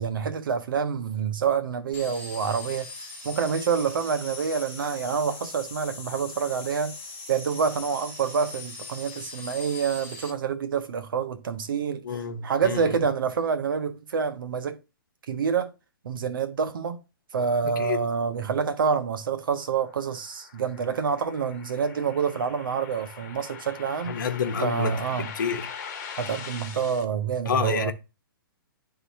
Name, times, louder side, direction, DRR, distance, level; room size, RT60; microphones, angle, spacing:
voice 1, 0.0-7.0 7.3-12.0 12.4-14.8 15.3-15.7 16.0-17.0 17.3-24.2 24.6-25.3 26.2-27.9, right 6 dB, 65° right, 0.9 m, -27 dB
sound 1, 1.9-10.3, left 3 dB, 15° left, 2.2 m, -40 dB
voice 2, 12.0-12.8 17.6-18.0 24.1-25.6 27.4-27.9, left 6 dB, 60° left, 1.0 m, -29 dB
sound 2, 19.2-27.0, left 7 dB, 40° left, 1.2 m, -42 dB
11.0 x 3.8 x 2.7 m
hypercardioid pair, 135°, 12 cm